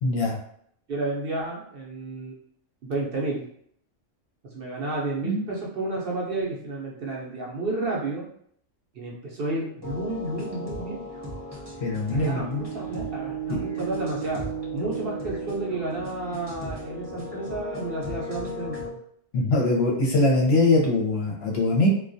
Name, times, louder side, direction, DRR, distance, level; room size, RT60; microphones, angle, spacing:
voice 1, 0.0-0.4 5.2-5.4 11.8-12.7 19.3-21.9, left 2 dB, 65° left, -2 dB, 0.8 m, -22 dB
voice 2, 0.9-2.3 2.8-3.4 4.5-8.2 8.9-11.0 12.1-14.5 14.7-19.0, right 2 dB, 60° right, -3 dB, 0.7 m, -31 dB
sound 1, 9.8-18.9, right 2 dB, 25° right, 0.7 m, -35 dB
2.2 x 2.2 x 2.5 m, 0.66 s
omnidirectional pair, 1.3 m